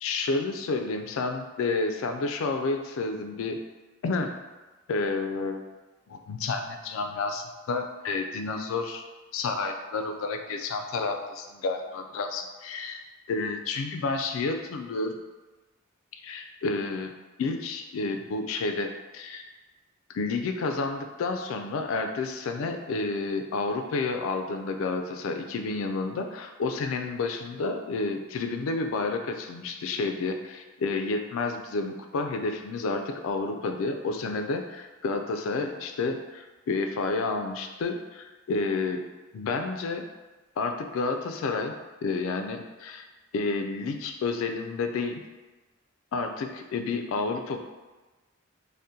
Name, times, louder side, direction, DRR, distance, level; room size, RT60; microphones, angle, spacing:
voice 1, 0.0-3.6 4.0-4.4 4.9-5.6 6.1-9.0 9.3-13.0 13.3-15.2 16.2-17.1 17.4-19.5 20.1-34.6 35.0-39.0 39.3-40.1 40.6-41.7 42.0-43.0 43.3-45.2 46.1-47.6, left 3 dB, 75° left, 5 dB, 0.3 m, -30 dB
2.7 x 2.1 x 3.6 m, 1.2 s
head